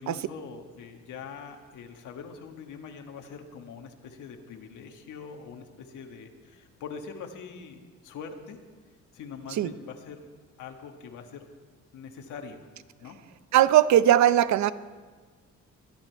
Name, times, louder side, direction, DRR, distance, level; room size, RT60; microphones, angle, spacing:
voice 1, 0.0-8.6 9.1-10.3 10.6-11.5 11.9-12.6 13.0-13.2, left 6 dB, 80° left, 4 dB, 1.5 m, -43 dB
voice 2, 13.5-14.7, right 12 dB, 70° right, 15 dB, 0.7 m, -19 dB
23.0 x 9.1 x 4.6 m, 1.4 s
cardioid pair, 90°, 30 cm